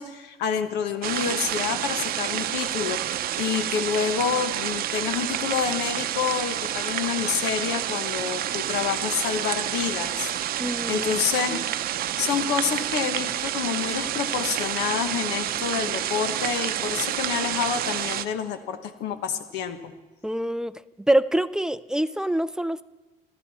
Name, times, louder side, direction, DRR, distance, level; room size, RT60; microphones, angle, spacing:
voice 1, 0.0-11.6 11.9-19.9, left 7 dB, 85° left, 8 dB, 1.2 m, -28 dB
sound 1, 1.0-18.2, right 11 dB, 65° right, 0.7 m, -29 dB
voice 2, 10.6-11.1 11.5-11.6 20.2-20.8 21.1-22.8, right 1 dB, 5° right, 15 dB, 0.4 m, -25 dB
25.0 x 13.0 x 4.2 m, 1.2 s
cardioid pair, 110°, 17 cm